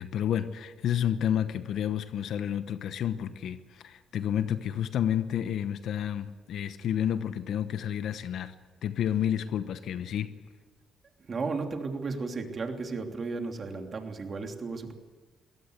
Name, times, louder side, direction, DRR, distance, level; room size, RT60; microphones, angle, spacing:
voice 1, 0.0-8.5 8.8-10.3, left 9 dB, 70° left, 11 dB, 1.0 m, -30 dB
voice 2, 11.3-14.9, right 4 dB, 40° right, 4 dB, 3.1 m, -34 dB
22.5 x 17.5 x 8.0 m, 1.4 s
cardioid pair, 90°, 0 cm